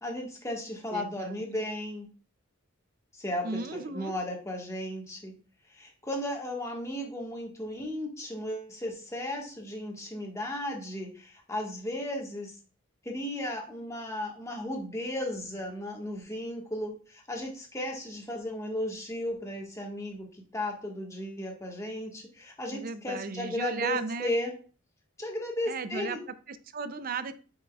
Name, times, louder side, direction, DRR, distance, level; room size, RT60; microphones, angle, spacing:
voice 1, 0.0-2.1 3.2-5.3 5.7-12.5 13.0-20.3 20.5-24.5 25.2-26.2, left 1 dB, 15° left, 0 dB, 1.5 m, -35 dB
voice 2, 0.9-1.4 3.4-4.1 22.7-24.3 25.7-27.3, right 4 dB, 45° right, 12 dB, 0.5 m, -35 dB
8.5 x 5.9 x 2.4 m, 0.37 s
head